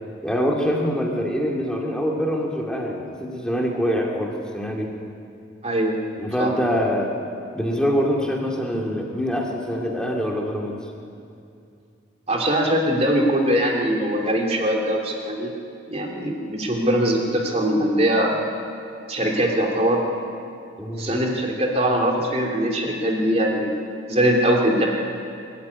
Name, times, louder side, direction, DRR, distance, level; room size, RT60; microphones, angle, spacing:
voice 1, 0.2-4.9 6.2-7.1 7.5-10.8 20.8-21.2, equal, 5° left, -1 dB, 2.4 m, -24 dB
voice 2, 5.6-6.0 6.4-6.5 12.3-15.5 15.9-18.3 19.1-20.0 21.0-23.7 24.1-24.9, right 1 dB, 35° right, 1 dB, 2.8 m, -21 dB
24.5 x 13.5 x 9.7 m, 2.5 s
head